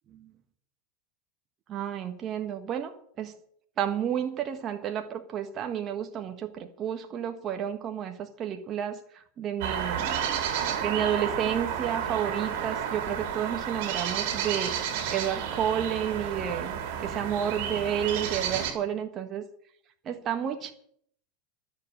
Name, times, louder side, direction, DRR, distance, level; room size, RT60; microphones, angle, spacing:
voice 1, 1.7-3.3 3.8-10.1 10.8-14.8 15.1-19.4 20.0-20.7, right 9 dB, 40° right, 1.4 m, -31 dB
sound 1, 9.6-18.7, right 8 dB, 65° right, 3.5 m, -31 dB
13.0 x 7.2 x 8.9 m
hypercardioid pair, 105°, 0 cm